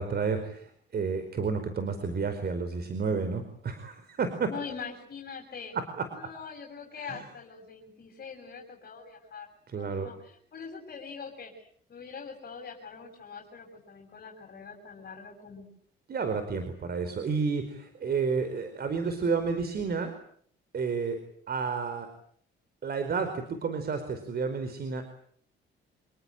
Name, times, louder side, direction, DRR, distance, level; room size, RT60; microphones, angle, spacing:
voice 1, 0.0-4.5 5.7-6.0 7.1-7.2 9.7-10.1 16.1-20.1 20.7-21.2 21.5-22.1 22.8-25.0, right 5 dB, 50° right, 9 dB, 4.8 m, -31 dB
voice 2, 4.5-5.7 6.1-9.5 9.7-15.7, left 5 dB, 50° left, 1 dB, 7.6 m, -43 dB
28.0 x 20.0 x 9.1 m, 0.62 s
cardioid pair, 90°, 20 cm